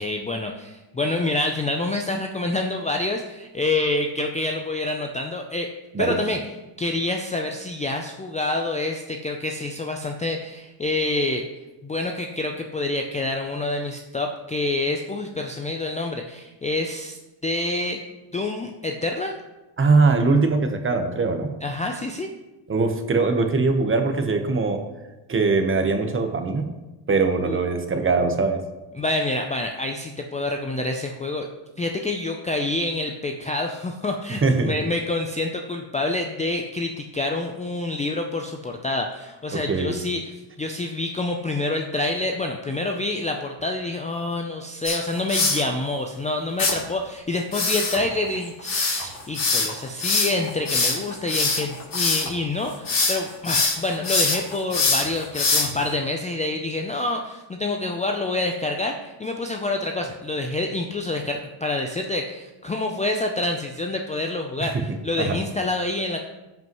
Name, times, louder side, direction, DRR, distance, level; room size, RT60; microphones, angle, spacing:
voice 1, 0.0-5.7 6.0-6.4 6.8-11.4 11.8-18.0 18.3-19.3 21.6-22.3 27.4-27.6 29.0-31.5 31.8-40.3 40.6-66.2, left 2 dB, 15° left, 3 dB, 0.5 m, -27 dB
voice 2, 19.8-21.6 22.7-24.8 25.3-26.7 27.1-28.6 34.3-34.7 39.5-40.0 64.6-64.8 65.2-65.4, right 4 dB, 25° right, 6 dB, 1.0 m, -21 dB
sound 1, 44.8-45.6 46.6-46.7 47.5-52.3 52.7-53.2 53.4-55.9, left 3 dB, 40° left, 3.2 m, -23 dB
16.0 x 5.4 x 3.1 m, 1.1 s
cardioid pair, 110°, 49 cm